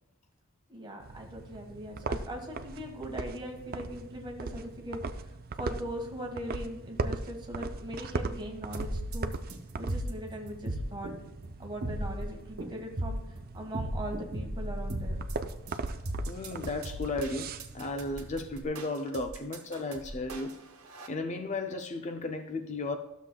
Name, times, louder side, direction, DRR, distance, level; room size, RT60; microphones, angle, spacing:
voice 1, 0.7-5.2 5.5-9.3 9.8-11.1 11.6-15.2, equal, 20° right, 1.4 m, -40 dB
sound 1, 1.0-18.6, right 3 dB, 40° right, 0.4 m, -40 dB
sound 2, 8.7-21.1, right 1 dB, 70° right, 1.2 m, -37 dB
voice 2, 16.3-20.7 21.1-23.0, left 2 dB, 30° left, 0.4 m, -34 dB
12.5 x 7.0 x 2.2 m
head